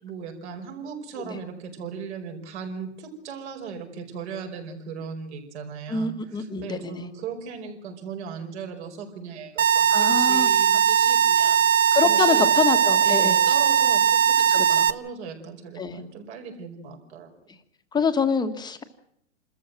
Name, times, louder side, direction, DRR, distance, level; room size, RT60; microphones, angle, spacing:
voice 1, 0.0-11.6 12.0-12.5 13.0-14.2 14.6-17.3, right 6 dB, 60° right, 3 dB, 5.1 m, -37 dB
voice 2, 5.9-7.0 9.9-10.5 11.9-13.4 14.5-14.8 15.8-16.0 17.9-18.8, left 5 dB, 10° left, 8 dB, 1.5 m, -26 dB
sound 1, 9.6-14.9, right 8 dB, 85° right, 0.9 m, -19 dB
27.0 x 13.5 x 7.8 m, 0.73 s
hypercardioid pair, 135°, 38 cm